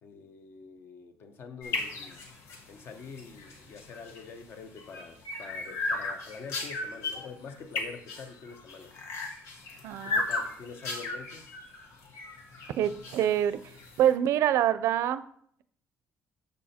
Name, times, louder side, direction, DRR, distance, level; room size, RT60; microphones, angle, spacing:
voice 1, 0.0-2.3 2.7-9.0 10.0-11.5, left 5 dB, 50° left, 1.0 m, -46 dB
sound 1, 1.6-14.1, left 2 dB, 70° left, 1.7 m, -36 dB
voice 2, 9.8-10.2 12.8-13.6 14.0-15.3, right 10 dB, 70° right, 0.5 m, -25 dB
7.0 x 6.7 x 4.3 m
cardioid pair, 150°, 5 cm